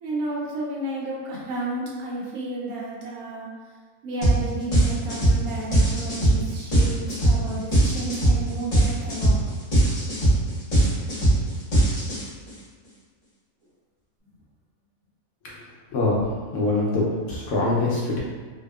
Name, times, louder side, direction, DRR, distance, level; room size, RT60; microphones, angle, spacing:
voice 1, 0.0-3.5 4.0-9.4, right 2 dB, 90° right, -4 dB, 1.1 m, -32 dB
sound 1, 4.2-4.4 4.7-12.5, right 1 dB, 35° left, 0.7 m, -20 dB
voice 2, 15.9-16.2 16.5-18.2, left 2 dB, 70° left, -5 dB, 0.9 m, -23 dB
2.8 x 2.1 x 2.2 m, 1.5 s
omnidirectional pair, 1.5 m